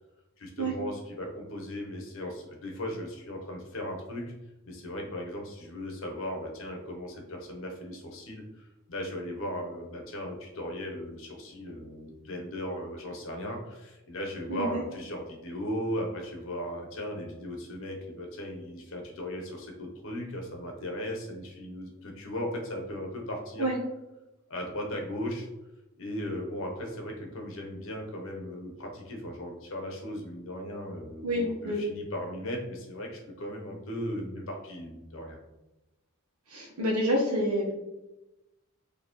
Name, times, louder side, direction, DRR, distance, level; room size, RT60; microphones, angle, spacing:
voice 1, 0.4-4.2 4.6-23.7 24.5-25.5 26.0-35.4, equal, 60° left, 1 dB, 0.9 m, -37 dB
voice 2, 14.5-14.8 23.6-23.8 31.2-31.8 36.5-37.7, equal, 85° right, -1 dB, 1.1 m, -28 dB
4.3 x 2.9 x 3.0 m, 0.99 s
head